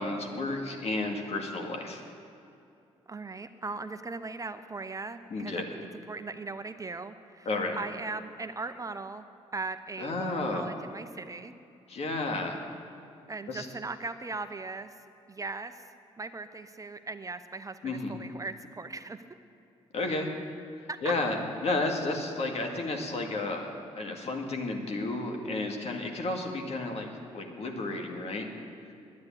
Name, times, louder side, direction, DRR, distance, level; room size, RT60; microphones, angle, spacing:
voice 1, 0.0-2.0 5.3-5.6 7.5-7.8 10.0-10.7 11.9-12.6 13.5-13.7 17.8-18.1 19.9-20.3 21.0-28.5 28.8-28.9, left 2 dB, 55° left, 2 dB, 2.1 m, -32 dB
voice 2, 3.1-9.3 9.5-11.5 13.3-15.0 15.3-15.9 16.2-19.2 20.9-21.1, right 3 dB, 25° right, 10 dB, 0.7 m, -39 dB
10.5 x 9.6 x 9.8 m, 2.5 s
supercardioid pair, 65°, 13 cm